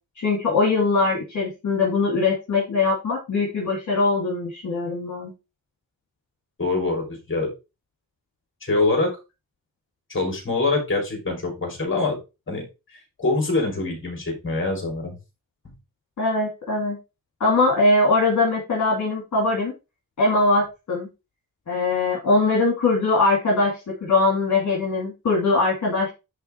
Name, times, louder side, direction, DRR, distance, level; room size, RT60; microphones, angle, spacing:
voice 1, 0.2-5.3 16.2-17.0 17.4-19.7 20.2-21.1 21.7-26.1, left 3 dB, 55° left, -3 dB, 2.6 m, -21 dB
voice 2, 6.6-7.5 8.6-9.1 10.1-12.2 12.5-12.6 12.9-15.2, left 3 dB, 35° left, 2 dB, 3.7 m, -24 dB
10.0 x 3.5 x 4.6 m, 0.27 s
wide cardioid pair, 165°, 35 cm